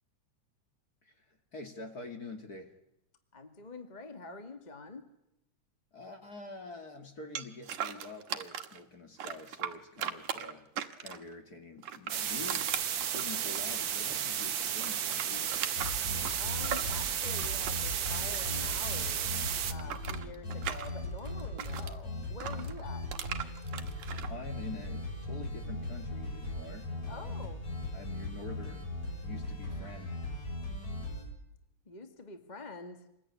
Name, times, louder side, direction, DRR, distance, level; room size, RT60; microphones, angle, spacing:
voice 1, 1.0-2.8 5.9-10.7 11.0-12.7 13.1-15.6 24.3-29.0 29.2-30.2, left 3 dB, 35° left, 5 dB, 2.4 m, -46 dB
voice 2, 3.3-5.0 16.4-19.3 19.7-23.1 27.1-27.6 31.9-33.0, left 3 dB, 15° left, 6 dB, 1.8 m, -46 dB
sound 1, 7.4-8.8 9.2-11.3 11.8-14.3 14.6-18.8 19.0-21.9 22.4-24.3, right 9 dB, 90° right, 2.8 m, -39 dB
sound 2, 12.1-19.7, right 9 dB, 55° right, 1.5 m, -33 dB
sound 3, 15.8-31.2, left 1 dB, 80° left, 8.8 m, -38 dB
26.5 x 20.5 x 9.7 m, 0.84 s
omnidirectional pair, 3.3 m